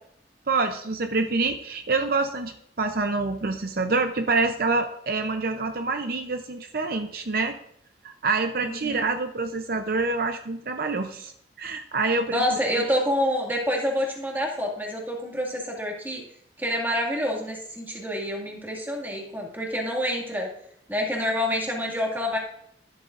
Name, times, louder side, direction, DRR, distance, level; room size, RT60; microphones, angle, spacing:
voice 1, 0.5-7.5 8.0-11.3 11.6-12.9, right 3 dB, 55° right, 6 dB, 0.6 m, -26 dB
voice 2, 8.6-9.0 12.3-16.2 16.6-20.5 20.9-22.4, equal, 10° right, 0 dB, 2.1 m, -27 dB
13.5 x 11.5 x 2.5 m, 0.71 s
head